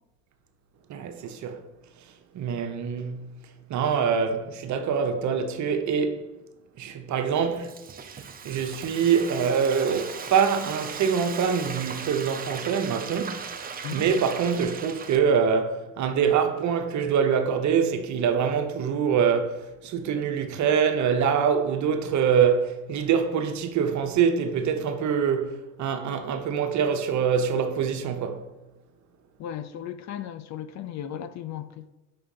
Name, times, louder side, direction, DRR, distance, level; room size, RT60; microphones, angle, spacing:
voice 1, 0.9-1.6 2.3-3.3 3.7-6.2 6.8-7.7 8.4-13.4 13.9-28.4, right 7 dB, 50° right, 0.9 m, -24 dB
Frying (food), 7.3-15.2, right 6 dB, 25° right, 0.6 m, -38 dB
voice 2, 29.4-31.9, left 10 dB, 45° left, 0.5 m, -36 dB
5.6 x 3.4 x 5.3 m
hypercardioid pair, 75°, 38 cm